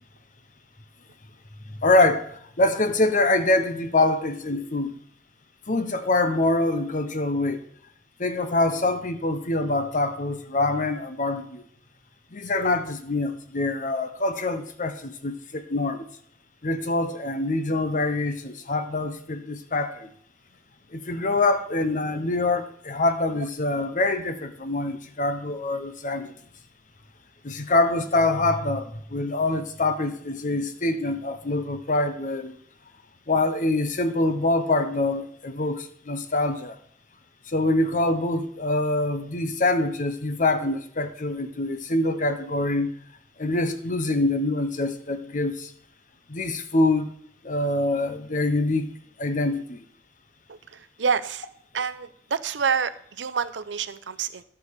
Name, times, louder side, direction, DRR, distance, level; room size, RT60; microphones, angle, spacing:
voice 1, 1.8-5.0 5.7-7.6 8.2-11.6 12.3-16.0 16.6-20.1 20.9-26.3 27.4-32.6 33.3-36.8 37.5-42.9 43.4-45.7 46.3-47.1 47.4-48.9 49.2-49.8, left 2 dB, 45° left, 0.9 m, -25 dB
voice 2, 50.5-51.5 51.7-54.4, right 6 dB, 90° right, 0.7 m, -28 dB
11.5 x 4.8 x 6.6 m
head